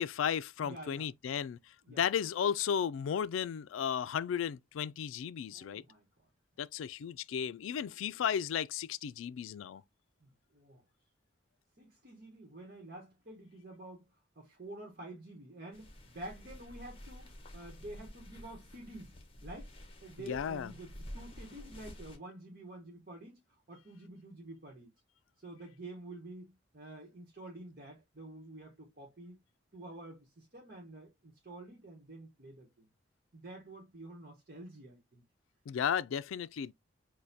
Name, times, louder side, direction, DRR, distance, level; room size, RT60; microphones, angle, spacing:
voice 1, 0.0-5.8 6.6-9.8 20.3-20.7 35.7-36.7, left 8 dB, 90° left, 0.3 m, -34 dB
voice 2, 0.6-1.1 1.8-2.1 5.5-6.0 10.2-10.8 11.8-14.1 14.4-19.2 19.4-19.7 20.0-24.9 25.4-29.4 29.7-32.9 33.3-35.2, right 1 dB, 50° right, 1.0 m, -49 dB
sound 1, 15.7-22.2, equal, 30° left, 1.0 m, -50 dB
6.3 x 2.2 x 2.7 m
head